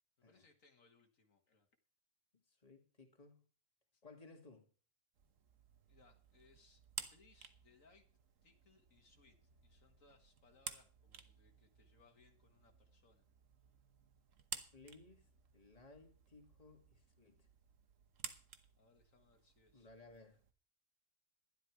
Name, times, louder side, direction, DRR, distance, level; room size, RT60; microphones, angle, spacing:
voice 1, 0.2-1.7 3.9-4.0 5.9-6.8 7.1-8.0 8.4-9.4 9.6-13.3 18.8-19.9, left 4 dB, 70° left, 2.0 m, -69 dB
voice 2, 2.5-3.5 4.0-4.7 14.7-15.3 15.5-17.5 19.7-20.4, left 3 dB, 25° left, 2.3 m, -60 dB
sound 1, 5.2-20.5, right 7 dB, 70° right, 1.5 m, -54 dB
12.5 x 11.5 x 4.7 m
omnidirectional pair, 1.4 m